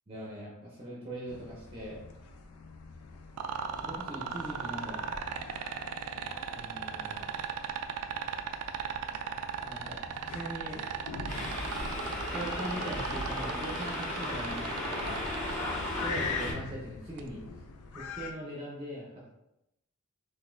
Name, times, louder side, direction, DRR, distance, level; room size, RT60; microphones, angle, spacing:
voice 1, 0.1-2.1 3.8-5.1 6.5-7.3 9.7-10.8 12.3-15.2 15.9-17.4 17.9-19.4, right 1 dB, 25° right, -4 dB, 0.6 m, -41 dB
sound 1, 1.3-18.3, left 4 dB, 90° left, 0.4 m, -44 dB
sound 2, 3.4-15.5 17.2-17.3, right 8 dB, 80° right, 0.3 m, -36 dB
sound 3, 11.3-16.5, left 1 dB, 35° left, 1.1 m, -35 dB
3.9 x 2.5 x 2.5 m, 0.87 s
head